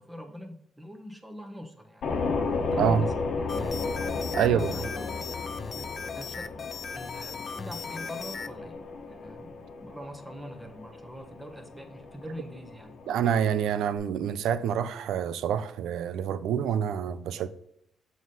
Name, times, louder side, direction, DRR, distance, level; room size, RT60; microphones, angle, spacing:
voice 1, 0.0-2.1 2.7-3.3 4.5-5.4 5.7-6.7 6.9-8.8 9.1-12.9, equal, 5° right, 1.2 m, -43 dB
sound 1, 2.0-14.0, left 4 dB, 65° left, 1.2 m, -34 dB
voice 2, 2.7-3.1 4.3-4.7 13.1-17.5, right 8 dB, 80° right, 0.5 m, -27 dB
sound 2, 3.5-8.5, left 6 dB, 40° left, 0.5 m, -38 dB
7.2 x 4.1 x 5.4 m
cardioid pair, 90°, 0 cm